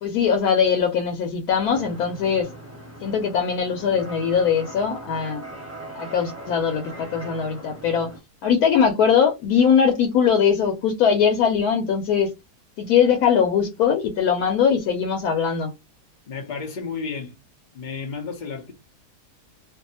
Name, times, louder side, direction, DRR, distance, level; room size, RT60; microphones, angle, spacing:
voice 1, 0.0-2.5 3.0-5.4 5.9-8.1 8.4-12.3 12.8-15.7, left 7 dB, 75° left, 1.0 m, -21 dB
sound 1, 1.7-8.2, right 1 dB, 10° right, 0.8 m, -40 dB
voice 2, 16.3-17.4 17.7-18.7, left 5 dB, 90° left, 0.4 m, -32 dB
2.6 x 2.3 x 2.7 m
omnidirectional pair, 1.7 m